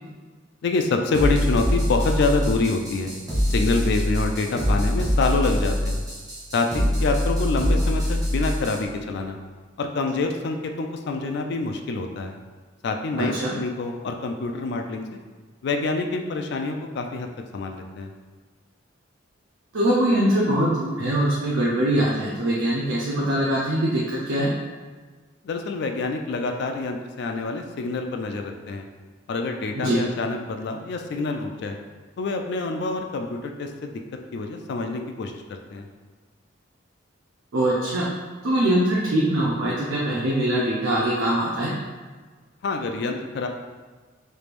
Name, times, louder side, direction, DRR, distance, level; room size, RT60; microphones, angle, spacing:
voice 1, 0.6-3.1 3.5-6.0 6.5-9.4 9.8-12.3 12.8-15.1 15.6-17.3 17.5-18.1 25.4-28.8 29.3-31.8 32.2-34.0 34.3-35.9 42.6-43.5, left 3 dB, 60° left, 4 dB, 0.3 m, -26 dB
sound 1, 1.1-8.8, equal, 20° right, 0.7 m, -24 dB
voice 2, 13.2-13.5 19.7-24.5 29.7-30.0 37.5-38.1 38.4-41.7, right 1 dB, 90° right, -5 dB, 0.6 m, -22 dB
3.3 x 3.1 x 2.5 m, 1.4 s
head